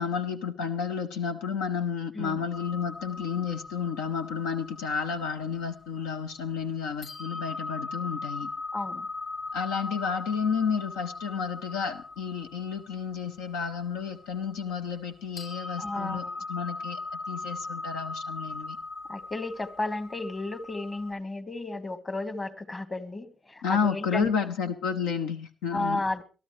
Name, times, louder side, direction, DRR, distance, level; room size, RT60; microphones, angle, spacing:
voice 1, 0.0-8.5 9.5-17.0 17.3-18.8 23.6-26.0, left 6 dB, 85° left, 0.8 m, -31 dB
sound 1, 2.5-6.6 7.0-15.1 15.4-21.1, left 3 dB, 50° left, 6.7 m, -39 dB
voice 2, 8.7-9.1 15.8-16.5 19.1-24.3 25.7-26.2, left 2 dB, 30° left, 1.6 m, -33 dB
22.0 x 13.0 x 3.2 m
supercardioid pair, 55°, 0 cm